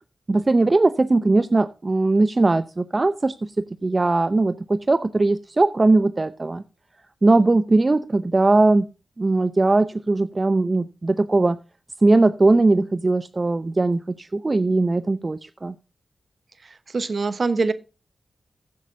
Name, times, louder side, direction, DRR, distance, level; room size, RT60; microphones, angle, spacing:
voice 1, 0.3-6.6 7.2-8.9 9.2-11.6 12.0-15.7, right 2 dB, 40° right, 12 dB, 0.6 m, -19 dB
voice 2, 16.9-17.7, right 4 dB, 60° right, 13 dB, 1.0 m, -23 dB
15.0 x 8.5 x 2.6 m, 0.31 s
cardioid pair, 40°, 0 cm